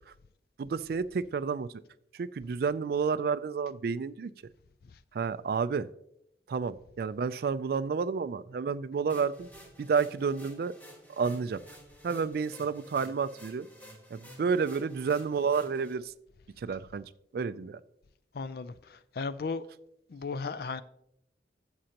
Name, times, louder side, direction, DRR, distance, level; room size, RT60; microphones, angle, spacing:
voice 1, 0.6-1.7 2.1-4.3 5.1-5.9 6.5-9.5 9.8-10.7 11.2-11.6 12.0-13.7 14.1-16.1 16.6-17.0 17.3-17.8, right 5 dB, 55° right, 0.3 m, -30 dB
sound 1, 9.1-15.9, equal, 10° left, 1.4 m, -52 dB
voice 2, 18.3-19.6 20.1-20.8, left 4 dB, 60° left, 0.4 m, -35 dB
12.5 x 7.6 x 2.9 m
head